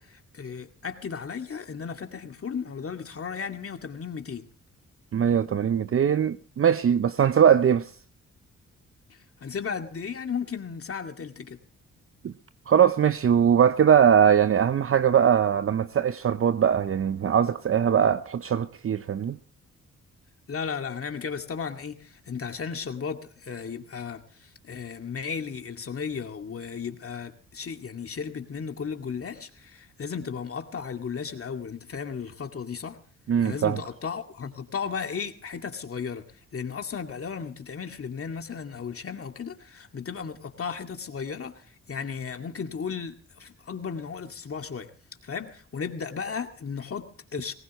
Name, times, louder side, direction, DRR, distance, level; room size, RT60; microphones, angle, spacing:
voice 1, 0.0-4.5 9.1-11.6 20.5-33.0 33.4-36.3 36.5-44.9 45.2-47.5, left 6 dB, 50° left, 2.2 m, -35 dB
voice 2, 5.1-7.9 12.2-12.3 12.7-19.4 33.3-33.8, right 8 dB, 45° right, 0.7 m, -21 dB
20.5 x 18.0 x 3.1 m
cardioid pair, 65°, 30 cm